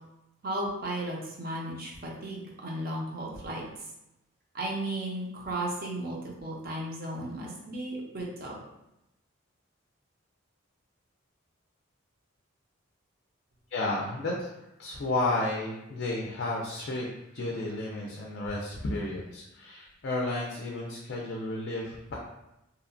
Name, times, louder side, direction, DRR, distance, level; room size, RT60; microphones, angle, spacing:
voice 1, 0.4-3.6 4.5-8.6, right 1 dB, 45° right, -2 dB, 0.5 m, -35 dB
voice 2, 13.7-14.5 14.8-17.1 17.3-22.2, left 2 dB, 50° left, -2 dB, 0.3 m, -32 dB
2.8 x 2.1 x 2.5 m, 0.89 s
head